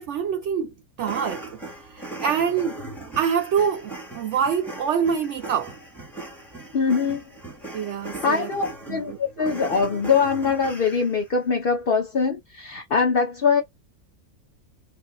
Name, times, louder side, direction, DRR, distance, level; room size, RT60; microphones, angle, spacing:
voice 1, 0.0-2.8 3.2-5.7 7.7-8.5 8.9-9.6, right 7 dB, 65° right, 0.8 m, -26 dB
sound 1, 1.0-11.2, right 2 dB, ahead, 1.3 m, -39 dB
voice 2, 6.7-7.2 8.2-13.6, left 5 dB, 45° left, 1.0 m, -23 dB
3.1 x 2.8 x 3.9 m
omnidirectional pair, 1.5 m